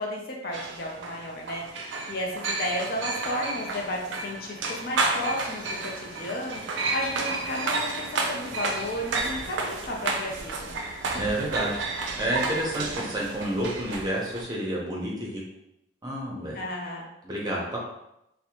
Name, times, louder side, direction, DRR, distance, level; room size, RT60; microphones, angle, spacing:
voice 1, 0.0-10.8 16.5-17.1, left 1 dB, 55° left, -1 dB, 0.5 m, -33 dB
sound 1, 0.5-14.4, right 3 dB, 85° right, 0.4 m, -31 dB
voice 2, 11.1-11.8 12.2-15.4 16.0-16.6 17.2-17.8, right 1 dB, 20° right, -4 dB, 0.6 m, -29 dB
2.6 x 2.1 x 2.8 m, 0.82 s
head